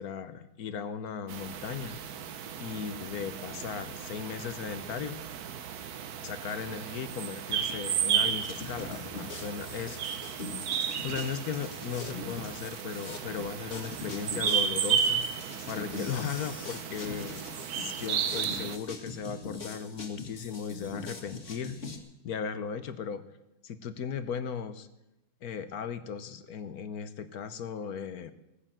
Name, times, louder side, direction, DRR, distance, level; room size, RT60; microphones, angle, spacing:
voice 1, 0.0-2.0 2.6-5.2 6.2-10.3 11.0-15.3 15.7-21.8 22.2-23.2 23.6-24.9 25.4-28.3, left 7 dB, 60° left, 12 dB, 1.1 m, -37 dB
sound 1, 1.3-18.8, right 8 dB, 60° right, 1.2 m, -33 dB
sound 2, 8.4-22.0, left 3 dB, 35° left, 2.0 m, -42 dB
17.5 x 9.9 x 7.5 m, 0.93 s
omnidirectional pair, 2.2 m